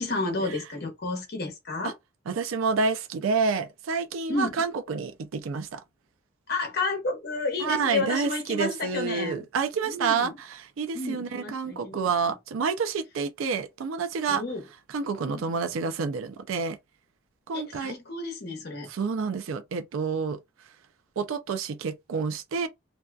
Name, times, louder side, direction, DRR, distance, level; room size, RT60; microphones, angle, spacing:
voice 1, 0.0-1.9 4.3-4.5 6.5-9.4 9.8-10.3 10.9-12.3 14.3-14.6 15.2-15.6 17.5-18.9, left 3 dB, 50° left, 0.9 m, -31 dB
voice 2, 2.3-5.8 7.6-14.4 14.9-16.8 17.5-17.9 18.9-20.4 21.2-22.7, right 5 dB, 80° right, 0.4 m, -28 dB
2.6 x 2.3 x 2.2 m
head